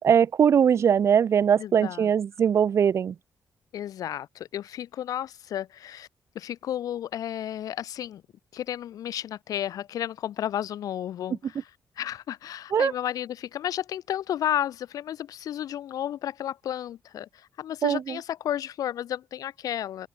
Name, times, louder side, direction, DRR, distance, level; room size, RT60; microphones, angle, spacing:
voice 1, 0.0-3.2 12.7-12.9 17.8-18.2, right 8 dB, 50° right, 2.1 m, -21 dB
voice 2, 1.6-2.1 2.4-2.5 3.7-6.1 6.3-8.2 8.5-11.6 12.0-17.3 17.6-20.1, left 11 dB, 85° left, 1.4 m, -32 dB
open air
wide cardioid pair, 160°, 6 cm